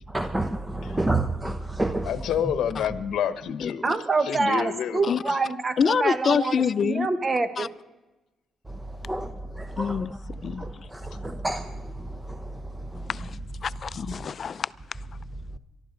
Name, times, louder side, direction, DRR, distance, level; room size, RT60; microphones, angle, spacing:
voice 1, 0.1-2.1 8.7-10.1 10.4-13.1, right 2 dB, 15° right, 0.8 m, -30 dB
voice 2, 2.0-3.8 4.2-5.2, left 9 dB, 75° left, 0.9 m, -28 dB
voice 3, 3.8-6.5 6.8-7.7, right 3 dB, 30° right, 1.2 m, -26 dB
voice 4, 5.8-7.1 7.6-7.7 9.8-10.9 13.1-13.4 13.6-14.7, left 6 dB, 50° left, 0.4 m, -26 dB
23.5 x 12.5 x 4.0 m
cardioid pair, 90°, 0 cm